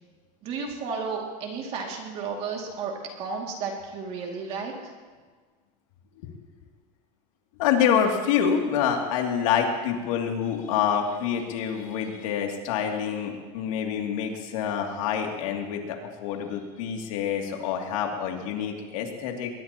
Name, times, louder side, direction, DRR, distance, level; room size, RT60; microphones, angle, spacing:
voice 1, 0.4-4.9, right 5 dB, 35° right, 0 dB, 2.5 m, -33 dB
voice 2, 7.6-19.5, left 8 dB, 85° left, 1 dB, 2.8 m, -27 dB
21.5 x 20.5 x 3.0 m, 1.5 s
cardioid pair, 175°, 17 cm